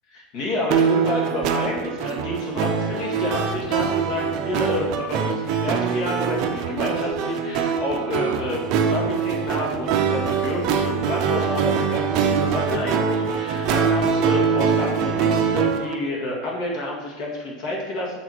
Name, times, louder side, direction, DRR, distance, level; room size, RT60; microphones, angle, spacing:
voice 1, 0.1-18.2, left 1 dB, 45° left, -3 dB, 2.0 m, -29 dB
sound 1, 0.7-15.9, right 6 dB, 45° right, 0.6 m, -23 dB
6.8 x 4.2 x 4.6 m, 1.2 s
supercardioid pair, 150°, 0 cm